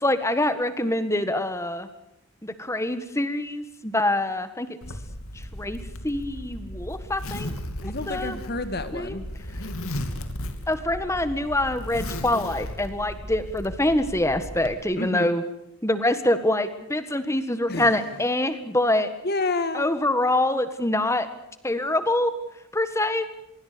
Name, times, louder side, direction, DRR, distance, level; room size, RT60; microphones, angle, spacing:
voice 1, 0.0-1.9 2.4-4.7 5.5-7.5 7.8-8.4 8.9-9.2 10.7-15.4 15.8-19.1 19.7-21.3 21.6-22.3 22.7-23.2, left 1 dB, 15° left, 11 dB, 1.6 m, -25 dB
Zipper (clothing), 4.8-14.7, left 1 dB, 70° left, 2.8 m, -35 dB
voice 2, 7.8-9.3 15.0-15.3 17.7-18.0 19.2-19.9, left 2 dB, 45° left, 10 dB, 1.7 m, -29 dB
25.0 x 22.5 x 6.8 m, 0.79 s
head